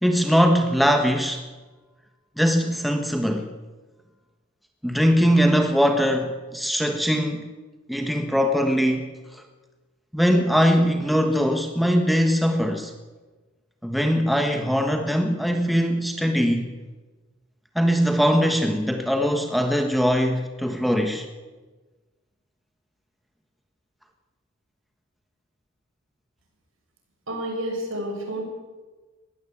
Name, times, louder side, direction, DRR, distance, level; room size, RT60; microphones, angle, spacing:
voice 1, 0.0-1.4 2.4-3.5 4.8-7.5 7.9-9.4 10.1-12.9 13.8-16.7 17.7-21.3, equal, ahead, 4 dB, 1.3 m, -21 dB
voice 2, 27.3-28.4, right 1 dB, 70° right, 3 dB, 6.6 m, -29 dB
21.5 x 16.0 x 8.6 m, 1.3 s
head